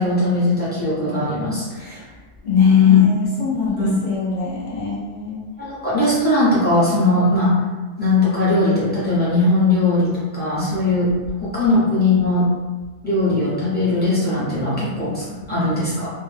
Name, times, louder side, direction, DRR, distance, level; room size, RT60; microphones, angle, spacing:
voice 1, 0.0-2.0 2.4-3.0 3.8-3.9 5.6-7.5 8.0-11.1 11.4-12.5 13.0-16.1, left 3 dB, 10° left, -10 dB, 0.5 m, -19 dB
voice 2, 2.4-5.4, left 4 dB, 65° left, -8 dB, 0.4 m, -27 dB
2.6 x 2.1 x 3.2 m, 1.3 s
omnidirectional pair, 1.6 m